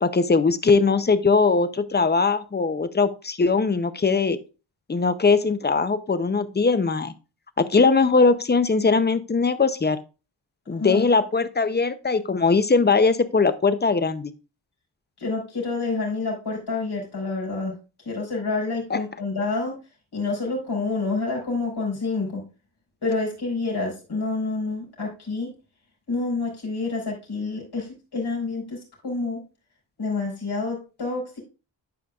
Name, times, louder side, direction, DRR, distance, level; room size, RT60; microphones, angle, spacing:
voice 1, 0.0-4.4 4.9-7.1 7.6-10.0 10.7-14.3 18.9-19.0, left 4 dB, 20° left, 12 dB, 0.5 m, -20 dB
voice 2, 15.2-19.8 20.1-22.4 23.0-25.5 26.1-29.4 30.0-31.4, left 3 dB, 55° left, -2 dB, 4.4 m, -28 dB
11.5 x 5.0 x 2.3 m, 0.31 s
wide cardioid pair, 105°, 47 cm